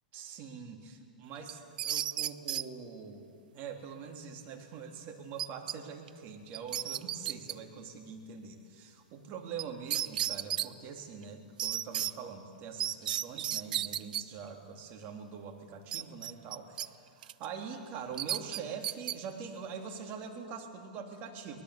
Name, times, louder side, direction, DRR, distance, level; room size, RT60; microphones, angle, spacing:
voice 1, 0.1-3.3 3.5-21.6, right 6 dB, 40° right, 3 dB, 3.4 m, -44 dB
sound 1, 1.5-2.7 5.4-5.8 6.1-6.2 6.5-7.5 9.6-9.7 9.9-10.7 11.6-12.1 12.8-14.2 15.9-16.9 17.2-17.5 18.2-19.2, right 11 dB, 65° right, 0.6 m, -33 dB
24.0 x 20.0 x 8.5 m, 2.3 s
hypercardioid pair, 110°, 5 cm